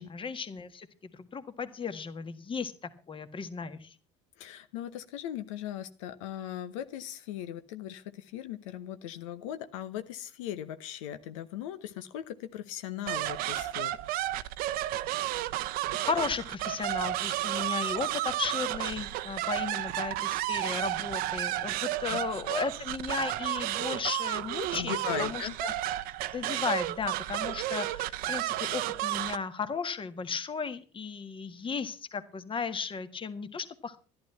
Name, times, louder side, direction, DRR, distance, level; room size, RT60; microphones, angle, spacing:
voice 1, 0.0-2.7 3.1-3.9 15.9-25.7 26.3-34.0, left 5 dB, 30° left, 10 dB, 1.7 m, -35 dB
voice 2, 4.4-14.0 22.1-22.2 24.7-25.5, left 11 dB, 85° left, 10 dB, 0.9 m, -38 dB
sound 1, 13.1-29.4, right 15 dB, 65° right, 0.7 m, -32 dB
12.0 x 11.5 x 5.6 m, 0.36 s
supercardioid pair, 75°, 16 cm